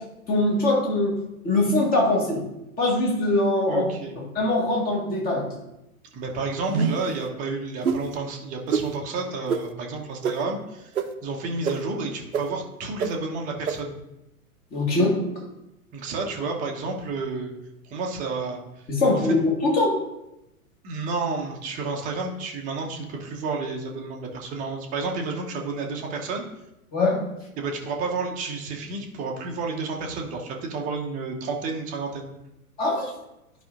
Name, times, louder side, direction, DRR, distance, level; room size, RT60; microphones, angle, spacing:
voice 1, 0.3-1.1 1.4-2.5 2.8-5.5 14.7-15.2 18.9-20.0 26.9-27.2 32.8-33.1, left 2 dB, 20° left, -1 dB, 1.6 m, -22 dB
voice 2, 3.7-4.2 6.1-10.9 11.2-13.9 15.9-17.5 17.8-18.6 19.2-19.4 20.8-26.4 27.6-32.3, right 3 dB, 20° right, 1 dB, 0.8 m, -31 dB
sound 1, 6.7-7.1 7.8-8.0 8.7-8.8 9.5-9.6 10.2-10.3 10.9-11.0 11.6-11.7 12.3-12.4 13.0-13.1 13.7-13.8, right 6 dB, 70° right, 0.8 m, -24 dB
11.0 x 5.1 x 2.5 m, 0.90 s
figure-of-eight pair, 110°, 45 cm